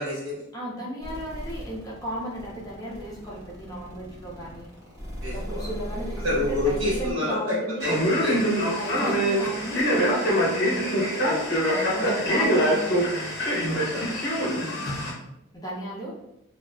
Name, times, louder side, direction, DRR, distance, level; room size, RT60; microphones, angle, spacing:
voice 1, 0.0-0.3 5.2-5.7 6.2-8.6 11.2-11.4 13.7-14.1, left 2 dB, 85° right, -6 dB, 1.2 m, -28 dB
voice 2, 0.5-4.7 5.3-7.9 8.8-10.9 11.6-13.4 13.7-13.9 14.5-14.8 15.5-16.1, right 1 dB, 20° left, -5 dB, 0.6 m, -35 dB
sound 1, 1.0-7.1, equal, 50° right, 0.9 m, -36 dB
Male speech man speaking, 7.8-15.1, equal, 55° left, 0.7 m, -24 dB
2.5 x 2.3 x 2.3 m, 0.84 s
head